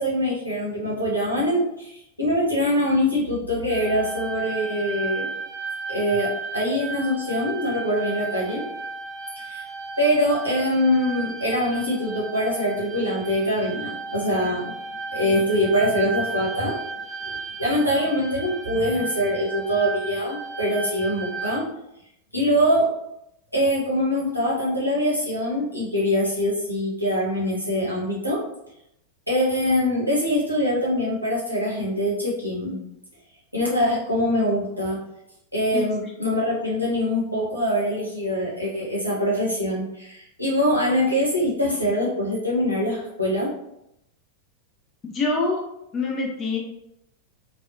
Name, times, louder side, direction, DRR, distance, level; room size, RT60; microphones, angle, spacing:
voice 1, 0.0-5.3 5.9-8.6 9.4-9.6 10.0-14.7 15.1-16.8 17.2-21.7 22.3-22.9 23.5-28.4 29.3-32.8 33.5-35.0 35.5-43.5, equal, 90° left, -6 dB, 1.1 m, -23 dB
sound 1, 3.7-21.6, right 4 dB, 20° right, 0.4 m, -34 dB
voice 2, 45.1-45.6 45.9-46.6, left 3 dB, 25° left, 0 dB, 0.5 m, -24 dB
3.4 x 2.3 x 2.5 m, 0.82 s
figure-of-eight pair, 90°, 0 cm